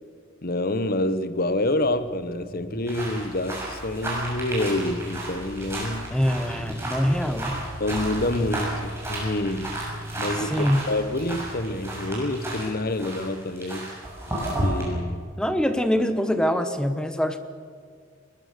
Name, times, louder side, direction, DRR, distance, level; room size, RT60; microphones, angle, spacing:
voice 1, 0.4-6.1 7.8-9.8 10.2-14.0 14.6-15.3, left 1 dB, 45° left, 1.0 m, -27 dB
sound 1, 1.3-14.1, equal, 80° right, 6.5 m, -40 dB
sound 2, 2.9-12.7 12.9-14.8, right 1 dB, 10° right, 7.0 m, -33 dB
voice 2, 6.1-7.6 10.5-10.9 15.4-17.4, equal, 5° left, 1.0 m, -24 dB
21.5 x 20.5 x 6.7 m
head